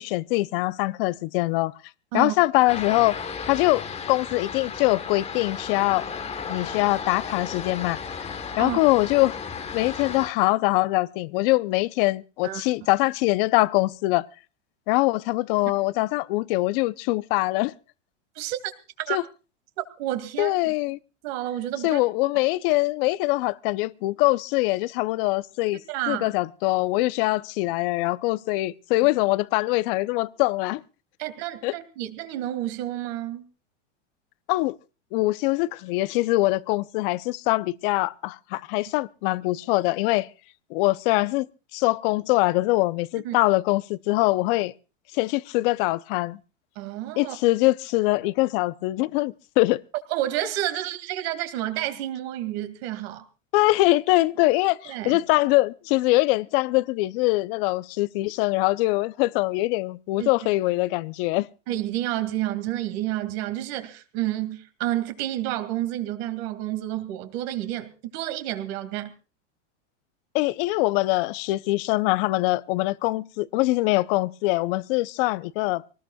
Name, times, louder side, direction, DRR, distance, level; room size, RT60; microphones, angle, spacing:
voice 1, 0.0-1.7 2.1-3.1 3.5-6.0 6.5-8.3 8.6-9.4 9.7-14.3 14.9-17.7 19.1-19.2 20.4-21.0 21.8-25.8 26.1-30.8 31.6-31.7 34.5-34.8 35.1-40.3 40.7-41.5 41.7-44.7 45.1-46.4 47.2-49.8 53.5-61.5 70.3-75.8, left 20 dB, 45° left, 0.7 m, -23 dB
sound 1, 2.7-10.3, left 6 dB, 15° left, 1.2 m, -34 dB
voice 2, 18.4-18.7 19.0-19.2 20.0-20.8 21.2-22.0 25.9-26.3 31.2-33.5 43.2-43.4 46.8-47.4 50.1-53.2 54.9-55.2 60.2-60.3 61.7-69.1, right 13 dB, 55° right, 2.3 m, -30 dB
24.5 x 19.0 x 2.3 m
supercardioid pair, 130°, 38 cm